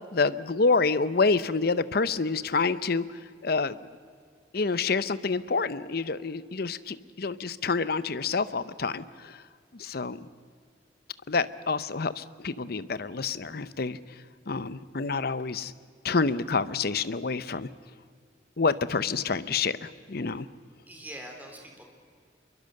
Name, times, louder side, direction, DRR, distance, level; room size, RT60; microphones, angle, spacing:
voice 1, 0.1-3.0 3.4-3.8 4.5-9.4 9.8-10.2 11.3-14.0 14.5-15.7 16.0-17.7 18.6-20.5, left 4 dB, 55° left, 15 dB, 0.7 m, -27 dB
voice 2, 20.9-21.9, right 1 dB, 10° right, 2 dB, 3.8 m, -44 dB
26.0 x 23.0 x 6.6 m, 2.1 s
head